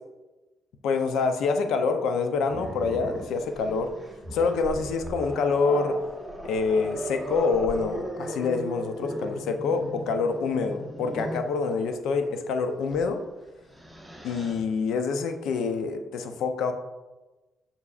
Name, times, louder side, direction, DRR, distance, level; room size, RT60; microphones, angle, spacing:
voice 1, 0.8-3.9 4.3-6.0 6.4-13.2 14.2-16.7, left 4 dB, 80° left, 7 dB, 0.6 m, -26 dB
Growling, 2.5-11.5 12.9-13.1 13.5-14.6, right 1 dB, 5° right, 0.9 m, -37 dB
7.0 x 5.4 x 2.5 m, 1.1 s
cardioid pair, 90°, 0 cm